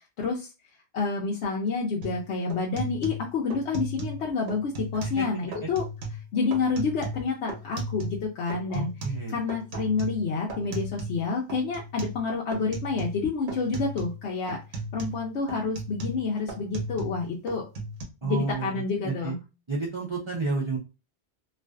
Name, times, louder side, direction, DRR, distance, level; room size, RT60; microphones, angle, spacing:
voice 1, 0.2-0.5 0.9-5.8 6.3-8.9 9.3-14.6 14.9-17.6 18.2-19.4, left 4 dB, 75° left, -2 dB, 0.8 m, -28 dB
sound 1, 2.0-2.2 2.5-4.2 4.5-5.2 5.5-6.2 6.5-8.2 8.5-11.2 11.5-12.2 12.5-13.2 13.5-14.2 14.5-17.2 17.5-18.0, right 2 dB, 85° right, 1.0 m, -35 dB
voice 2, 8.7-9.4 18.2-19.3 19.7-20.8, right 3 dB, 35° right, -3 dB, 0.5 m, -30 dB
2.4 x 2.4 x 2.2 m, 0.28 s
omnidirectional pair, 1.1 m